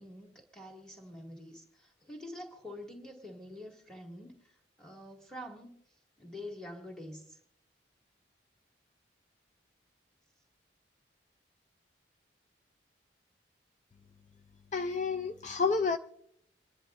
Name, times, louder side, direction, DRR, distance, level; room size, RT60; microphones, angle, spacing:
voice 1, 0.0-5.7 6.2-7.4, left 1 dB, 5° left, 0 dB, 2.3 m, -46 dB
voice 2, 14.7-16.0, left 4 dB, 40° left, 8 dB, 0.4 m, -30 dB
27.0 x 10.5 x 2.5 m, 0.71 s
head